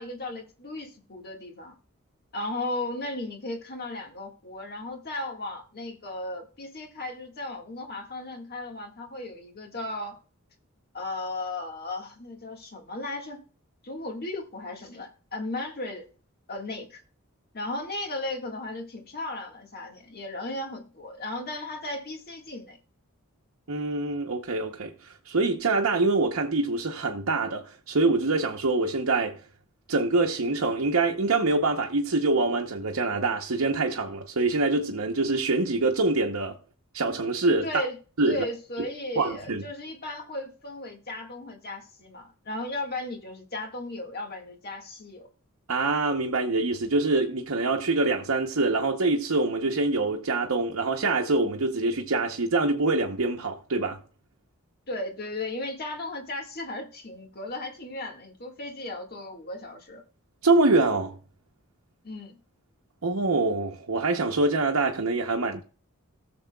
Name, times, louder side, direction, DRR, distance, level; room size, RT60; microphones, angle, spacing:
voice 1, 0.0-1.7 2.3-10.2 10.9-13.4 13.8-16.1 16.5-17.0 17.5-22.8 37.6-38.0 38.3-45.3 54.9-60.0 62.0-62.4, left 2 dB, 45° left, 1.8 m, -36 dB
voice 2, 23.7-29.4 29.9-36.6 36.9-37.8 38.2-38.4 39.2-39.6 45.7-54.0 60.4-61.2 63.0-65.6, right 3 dB, 80° right, 0.9 m, -25 dB
18.0 x 6.9 x 2.3 m
head